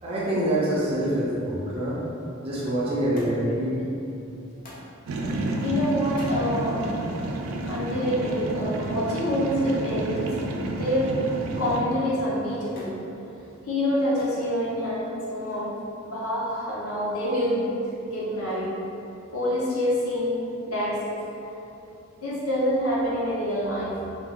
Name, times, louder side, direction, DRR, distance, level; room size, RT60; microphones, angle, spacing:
voice 1, 0.0-2.0 2.4-3.9, right 1 dB, 25° right, -7 dB, 0.6 m, -25 dB
Thump thud, 3.1-3.6 4.6-4.9 6.0-6.4 7.6-7.9 10.2-10.5 10.8-11.4 12.8-13.0 14.2-14.4 15.4-15.9 16.8-16.9, left 1 dB, 40° left, 0.6 m, -45 dB
sound 1, 5.1-11.8, right 1 dB, 75° right, 0.3 m, -30 dB
voice 2, 5.6-6.8 7.7-10.3 10.6-11.1 11.6-12.9 13.6-15.7 16.0-17.7 18.1-18.7 19.3-20.3 20.7-21.2 22.1-23.9, equal, 85° left, -7 dB, 0.9 m, -26 dB
2.7 x 2.4 x 3.5 m, 2.7 s
head